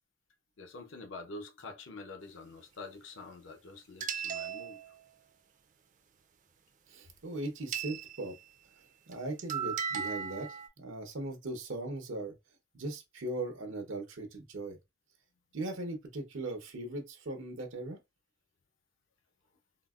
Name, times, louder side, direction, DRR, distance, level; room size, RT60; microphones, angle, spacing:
voice 1, 0.6-4.8, left 3 dB, 75° left, 0.6 m, -46 dB
sound 1, 4.0-5.1 7.7-8.5 9.1-9.2 9.4-10.7, right 7 dB, 40° right, 0.4 m, -37 dB
voice 2, 6.9-8.3 9.1-12.3 12.7-14.8 15.5-18.0, right 2 dB, 90° right, 0.8 m, -39 dB
3.8 x 2.1 x 2.3 m
head